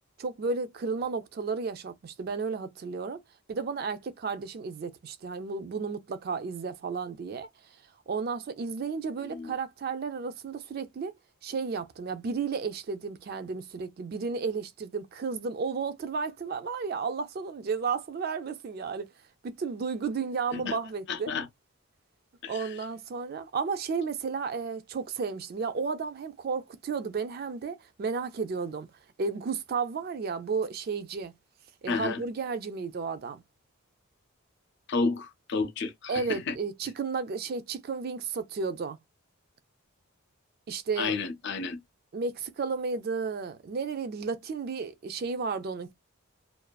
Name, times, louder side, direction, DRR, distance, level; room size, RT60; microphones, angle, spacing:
voice 1, 0.2-3.2 3.5-7.5 8.1-11.1 11.4-19.1 19.4-21.3 22.5-28.9 29.2-31.3 31.8-33.4 36.1-39.0 40.7-41.2 42.1-45.9, right 5 dB, 45° right, 0.3 m, -33 dB
voice 2, 21.1-21.5 22.4-22.7 31.9-32.2 34.9-36.5 41.0-41.8, left 4 dB, 50° left, 0.4 m, -31 dB
2.4 x 2.3 x 2.2 m
head